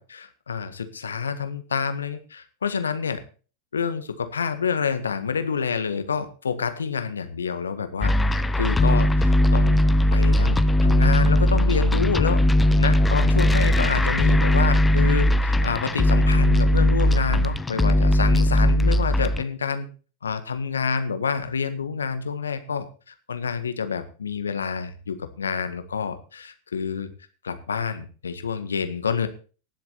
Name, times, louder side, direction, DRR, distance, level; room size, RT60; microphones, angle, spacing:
voice 1, 0.0-3.2 3.7-9.8 10.1-12.4 12.8-19.9 20.2-27.1 27.4-29.3, left 6 dB, 80° left, 10 dB, 1.6 m, -28 dB
sound 1, 8.0-19.4, left 1 dB, 10° left, 0.7 m, -19 dB
18.5 x 7.6 x 4.2 m, 0.36 s
figure-of-eight pair, 90°, 0 cm